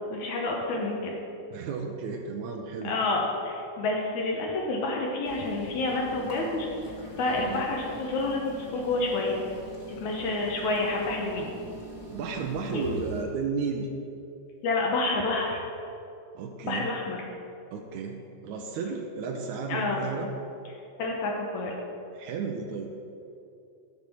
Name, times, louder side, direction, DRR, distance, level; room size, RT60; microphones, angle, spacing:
voice 1, 0.1-1.2 2.8-6.7 7.2-9.4 10.0-11.5 12.7-12.8 14.6-15.6 16.6-17.2 19.7-20.0 21.0-21.8, left 2 dB, 75° left, -1 dB, 2.3 m, -29 dB
voice 2, 1.5-3.0 7.4-7.6 12.1-13.9 16.4-16.9 17.7-20.3 22.1-22.9, right 5 dB, 85° right, 2 dB, 2.0 m, -33 dB
sound 1, 5.3-13.2, equal, 30° left, 1.2 m, -42 dB
12.5 x 5.4 x 4.4 m, 2.7 s
omnidirectional pair, 3.4 m